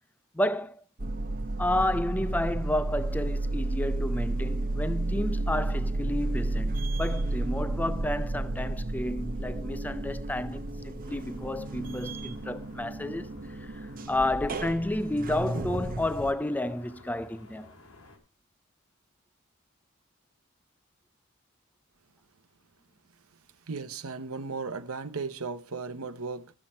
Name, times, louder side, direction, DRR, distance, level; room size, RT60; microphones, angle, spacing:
voice 1, 0.3-0.8 1.6-13.3 13.6-17.7, left 1 dB, 10° left, 0.5 m, -31 dB
sound 1, 1.0-16.3, right 2 dB, 40° right, 0.9 m, -32 dB
sound 2, 11.0-18.2, left 2 dB, 90° left, 2.7 m, -54 dB
voice 2, 23.7-26.5, right 4 dB, 90° right, 1.0 m, -36 dB
13.0 x 7.5 x 4.4 m
head